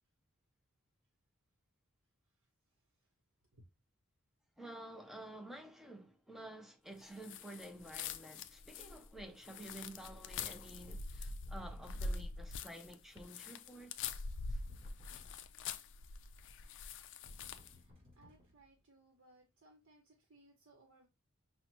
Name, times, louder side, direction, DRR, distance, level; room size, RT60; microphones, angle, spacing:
voice 1, 4.6-14.1 14.5-14.6, right 1 dB, ahead, 0.5 m, -51 dB
sound 1, 7.2-17.8, left 4 dB, 60° left, 0.4 m, -44 dB
sound 2, 10.7-12.4 14.3-15.7 17.2-18.8, left 2 dB, 25° right, 2.1 m, -63 dB
voice 2, 18.2-21.1, right 2 dB, 60° right, 0.9 m, -65 dB
5.6 x 2.1 x 2.9 m
head